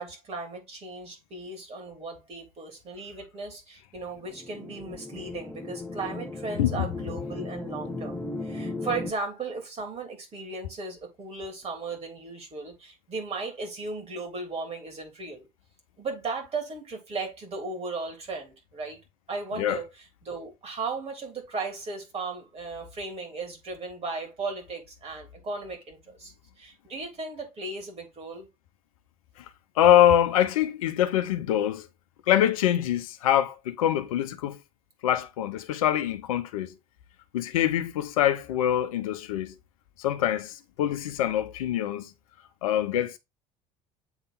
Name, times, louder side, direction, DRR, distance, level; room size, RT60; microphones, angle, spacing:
voice 1, 0.0-15.5 16.0-19.0 19.3-19.8 20.2-28.5, right 3 dB, 35° right, 3.3 m, -36 dB
sound 1, 4.2-9.1, left 2 dB, 5° left, 1.2 m, -36 dB
voice 2, 29.8-31.9 32.3-34.6 35.0-36.7 37.3-39.5 40.0-42.1 42.6-43.2, left 11 dB, 70° left, 0.8 m, -24 dB
8.0 x 3.6 x 4.0 m
figure-of-eight pair, 65°, 19 cm